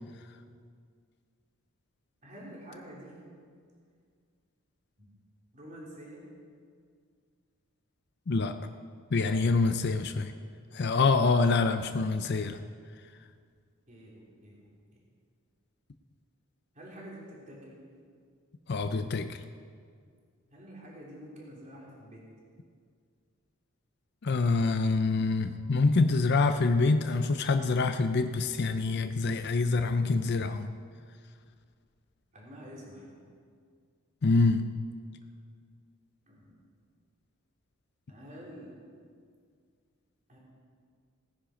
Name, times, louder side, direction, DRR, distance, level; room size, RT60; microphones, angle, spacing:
voice 1, 2.2-3.2 5.0-5.1 5.5-6.2 13.9-14.7 16.7-17.8 20.5-22.3 32.3-33.2 36.3-36.5 38.1-38.7 40.3-40.4, equal, 35° right, -4 dB, 3.6 m, -47 dB
voice 2, 9.1-10.3 10.7-12.6 18.7-19.3 24.2-30.7 34.2-34.6, left 3 dB, 55° left, 8 dB, 0.5 m, -26 dB
17.5 x 9.9 x 5.1 m, 2.1 s
head